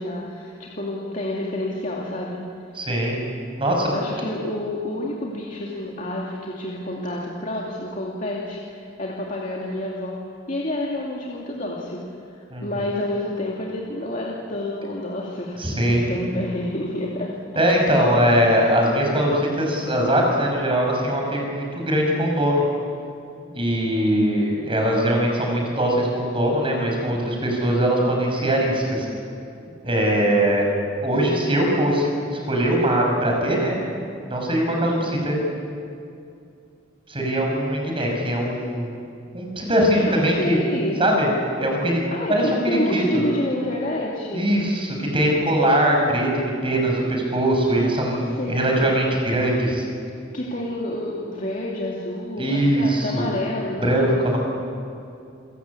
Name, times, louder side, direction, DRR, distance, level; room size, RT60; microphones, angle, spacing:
voice 1, 0.0-2.4 3.9-12.1 12.6-17.8 40.1-41.0 42.1-44.5 48.4-49.0 50.3-54.0, left 1 dB, 40° left, -3 dB, 2.5 m, -29 dB
voice 2, 2.8-3.2 3.6-3.9 12.5-12.7 15.6-16.1 17.5-22.6 23.5-29.1 29.8-30.6 31.0-33.8 34.3-35.4 37.1-39.0 39.3-40.6 41.0-41.3 41.6-42.0 42.3-43.2 44.3-49.8 52.4-53.3 53.8-54.4, right 1 dB, 30° right, 0 dB, 5.9 m, -21 dB
29.0 x 16.0 x 8.5 m, 2.5 s
head